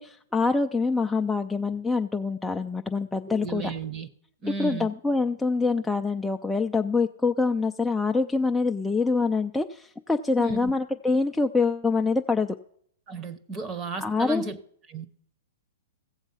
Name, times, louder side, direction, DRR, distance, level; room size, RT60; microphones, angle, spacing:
voice 1, 0.0-3.7 4.6-12.6 14.0-14.5, left 4 dB, 5° left, 0.3 m, -25 dB
voice 2, 3.3-4.1 4.4-4.9 10.4-10.7 13.1-14.6 14.9-15.1, right 2 dB, 20° right, 0.9 m, -33 dB
15.5 x 7.2 x 5.5 m
hypercardioid pair, 150°, 0 cm